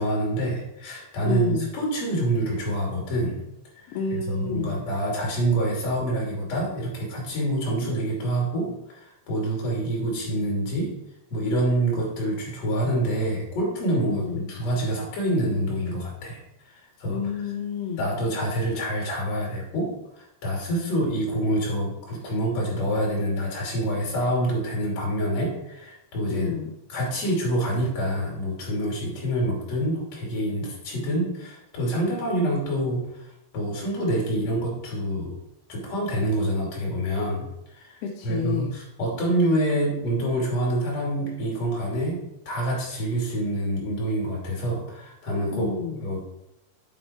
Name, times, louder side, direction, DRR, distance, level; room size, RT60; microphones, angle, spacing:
voice 1, 0.0-3.4 3.7-10.9 11.3-16.4 16.7-17.2 18.0-19.9 20.2-26.5 26.9-33.3 33.5-35.3 35.7-42.2 42.5-45.7 46.0-46.2, right 1 dB, 40° left, -2 dB, 3.7 m, -26 dB
voice 2, 1.2-1.7 3.9-4.8 14.1-14.5 17.1-18.1 26.3-26.7 38.0-38.8 45.5-46.0, left 6 dB, 80° left, 1 dB, 2.5 m, -30 dB
8.7 x 7.8 x 4.6 m, 0.88 s
omnidirectional pair, 5.2 m